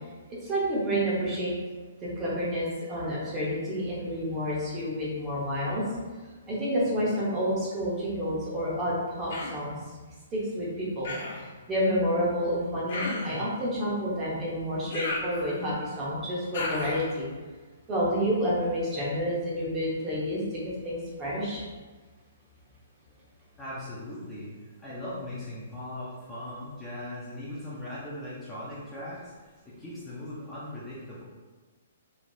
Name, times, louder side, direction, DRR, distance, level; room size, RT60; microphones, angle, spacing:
voice 1, 0.3-1.5 2.2-5.8 6.5-9.7 10.3-11.1 11.7-17.3 17.9-20.4 20.8-21.6, equal, 20° right, -6 dB, 0.8 m, -29 dB
Human voice, 9.3-9.7 11.0-11.5 12.9-13.5 14.9-15.8 16.5-17.1, left 2 dB, 55° left, 0.7 m, -34 dB
voice 2, 23.6-29.3 29.6-31.2, left 1 dB, 10° left, -10 dB, 0.6 m, -39 dB
3.2 x 2.7 x 2.6 m, 1.3 s
hypercardioid pair, 155°, 0 cm